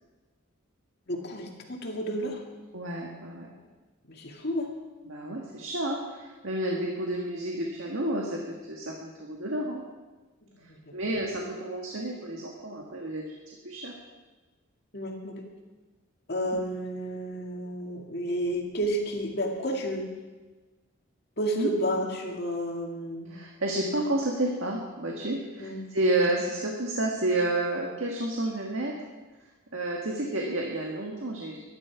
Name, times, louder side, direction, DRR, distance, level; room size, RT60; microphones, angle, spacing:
voice 1, 1.1-2.4 4.1-4.7 10.7-11.0 14.9-15.5 16.3-20.1 21.4-23.3 25.6-25.8 26.3-26.4, equal, 50° left, 1 dB, 2.3 m, -31 dB
voice 2, 2.7-3.5 5.0-9.8 10.9-13.4 13.6-13.9 16.5-16.6 21.5-21.7 23.3-28.9 29.7-31.6, right 1 dB, 65° right, -1 dB, 1.8 m, -30 dB
23.5 x 11.0 x 4.7 m, 1.2 s
head